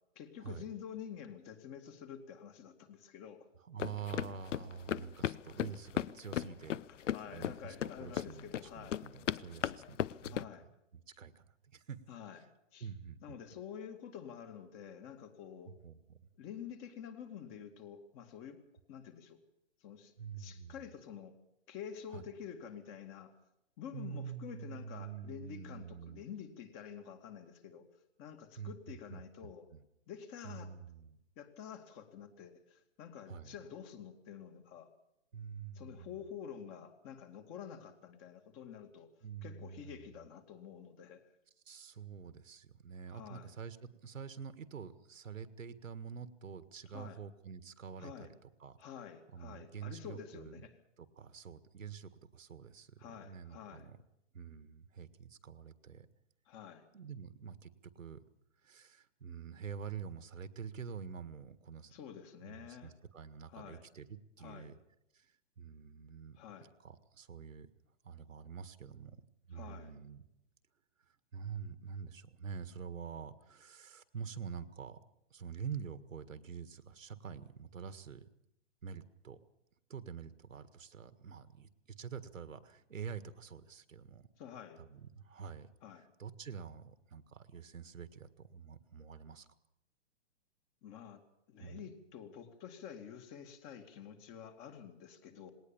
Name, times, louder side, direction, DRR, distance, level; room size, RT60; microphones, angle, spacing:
voice 1, 0.2-3.5 6.9-9.0 10.3-10.6 12.1-12.4 12.7-12.9 13.2-15.7 16.4-18.6 18.9-19.4 19.8-21.4 21.7-23.4 23.8-27.9 28.2-29.7 30.1-30.7 31.4-34.9 35.7-39.1 39.4-41.2 43.1-43.5 46.9-47.2 48.0-48.3 48.8-50.7 53.0-53.9 56.5-56.8 61.9-62.9 63.5-63.8 64.4-64.7 66.4-66.7 69.5-69.9 84.4-84.8 85.8-86.1 90.8-91.2 91.5-95.5, left 8 dB, 30° left, 7 dB, 2.3 m, -49 dB
voice 2, 3.6-10.5 10.9-12.0 12.8-13.4 15.7-16.3 20.2-20.9 22.1-22.3 23.9-26.2 28.6-29.8 30.4-31.2 33.3-33.6 35.3-36.2 39.2-40.1 41.6-48.8 49.3-50.7 51.0-54.0 54.3-56.1 56.9-58.2 58.6-61.9 62.4-64.8 65.1-67.7 68.0-69.2 69.5-70.2 71.3-75.0 75.3-78.2 78.8-79.4 79.9-84.3 84.8-85.7 86.0-89.5 91.6-91.8, right 7 dB, 85° right, 12 dB, 1.8 m, -47 dB
sound 1, 3.8-10.4, left 10 dB, 70° left, 0.7 m, -37 dB
19.5 x 18.5 x 7.2 m, 0.81 s
hypercardioid pair, 140°, 38 cm